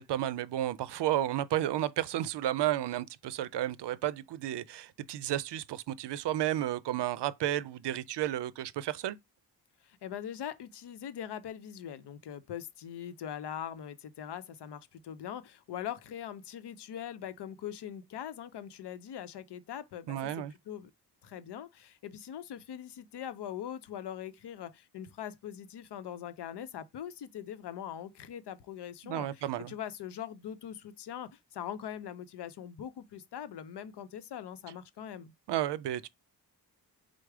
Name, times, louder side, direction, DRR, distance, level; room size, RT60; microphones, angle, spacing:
voice 1, 0.0-9.2 20.1-20.5 29.0-29.7 35.5-36.1, right 12 dB, 85° right, 0.5 m, -32 dB
voice 2, 9.8-20.9 21.2-35.3, left 9 dB, 75° left, 0.7 m, -42 dB
4.8 x 2.0 x 4.7 m
wide cardioid pair, 175°, 41 cm